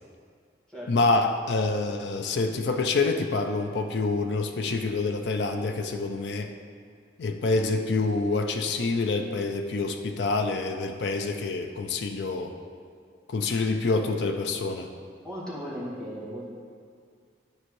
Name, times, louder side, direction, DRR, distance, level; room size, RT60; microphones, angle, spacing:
voice 1, 0.9-6.5 7.2-12.5 13.3-14.9, left 3 dB, 85° left, 5 dB, 0.5 m, -27 dB
voice 2, 15.2-16.4, equal, 5° left, -9 dB, 1.9 m, -36 dB
12.5 x 4.4 x 3.2 m, 2.2 s
head